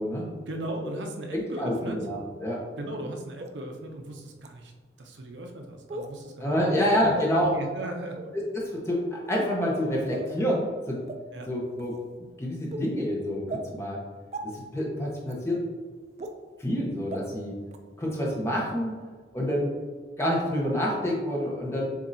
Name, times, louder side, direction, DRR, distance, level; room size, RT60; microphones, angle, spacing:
voice 1, 0.5-2.0 2.8-4.7 5.0-7.2 7.5-8.3 11.3-11.5, right 1 dB, 75° right, 3 dB, 0.6 m, -37 dB
voice 2, 1.3-2.6 6.4-7.5 8.5-11.0 11.5-12.0 12.4-14.0 14.4-15.6 16.6-17.5 18.0-18.9 19.3-19.7 20.2-21.9, equal, 15° left, -3 dB, 0.9 m, -27 dB
sound 1, 3.4-3.5 4.4-4.5 5.9-6.1 7.1-7.3 8.1-8.3 9.3-9.5 10.1-10.3 11.1-11.2 11.8-12.0 12.7-12.8 13.5-13.6 14.3-14.4 15.3-15.4 16.2-16.3 17.1-17.2 17.7-17.8, right 2 dB, 35° right, 0.3 m, -36 dB
7.2 x 2.7 x 2.7 m, 1.5 s
head